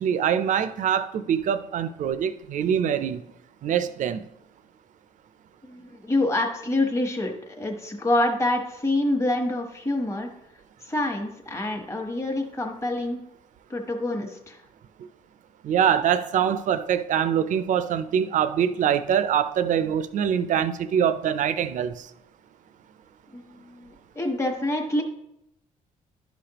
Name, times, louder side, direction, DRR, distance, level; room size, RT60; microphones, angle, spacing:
voice 1, 0.0-3.3 3.6-4.2 15.6-22.1, right 8 dB, 60° right, 0.5 m, -24 dB
voice 2, 5.6-10.3 10.8-13.2 13.7-14.6 23.3-25.0, left 1 dB, 20° left, 1.1 m, -27 dB
11.0 x 5.0 x 2.9 m
cardioid pair, 100°, 14 cm